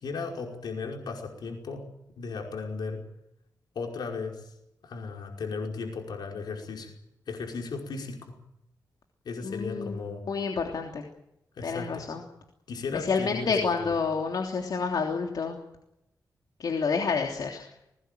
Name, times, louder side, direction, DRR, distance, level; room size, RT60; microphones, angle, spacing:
voice 1, 0.0-1.8 2.1-3.0 3.8-4.5 4.8-6.9 7.3-8.3 9.3-10.2 11.6-12.1 12.7-13.5, left 4 dB, 85° left, 2 dB, 5.2 m, -35 dB
voice 2, 9.4-11.0 11.6-12.2 12.9-15.6 16.6-17.7, left 5 dB, 70° left, 2 dB, 3.2 m, -29 dB
21.0 x 19.5 x 9.2 m, 0.83 s
wide cardioid pair, 90°, 7 cm